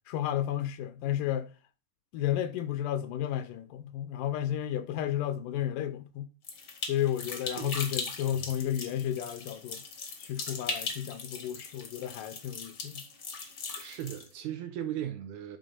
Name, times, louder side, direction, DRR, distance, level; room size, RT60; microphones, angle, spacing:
voice 1, 0.1-1.5 2.1-6.3 6.9-9.8 10.2-13.0, left 11 dB, 80° left, 2.1 m, -32 dB
sound 1, 6.4-14.3, left 4 dB, 65° left, 1.1 m, -39 dB
voice 2, 13.8-15.6, right 11 dB, 75° right, 1.9 m, -37 dB
9.2 x 3.8 x 5.3 m
omnidirectional pair, 3.9 m